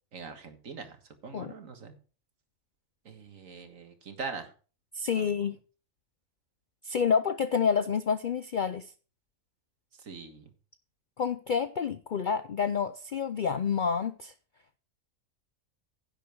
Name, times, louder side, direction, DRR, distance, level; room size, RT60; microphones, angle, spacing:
voice 1, 0.1-1.0 1.2-2.0 3.1-4.5 5.1-5.4 10.0-10.5, right 5 dB, 75° right, 7 dB, 1.9 m, -42 dB
voice 2, 4.9-5.5 6.8-8.9 11.2-14.3, left 6 dB, 60° left, 11 dB, 0.5 m, -28 dB
10.5 x 7.5 x 4.6 m, 0.38 s
omnidirectional pair, 1.4 m